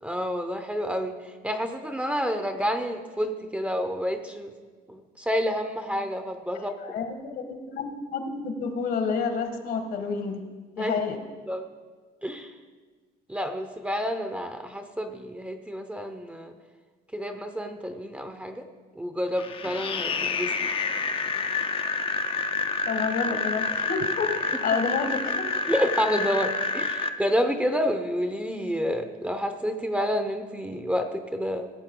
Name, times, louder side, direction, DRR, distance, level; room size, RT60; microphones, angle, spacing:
voice 1, 0.0-4.5 4.9-6.7 10.8-11.0 11.5-11.7 12.2-12.5 13.3-16.5 17.1-18.7 19.0-20.5 25.7-31.7, equal, 10° right, 7 dB, 0.7 m, -29 dB
voice 2, 6.8-10.4 10.8-11.2 22.9-25.4, left 5 dB, 65° left, 5 dB, 1.5 m, -29 dB
sound 1, 19.4-27.1, left 4 dB, 30° left, 0.6 m, -28 dB
16.5 x 7.4 x 3.8 m, 1.4 s
cardioid pair, 110°, 17 cm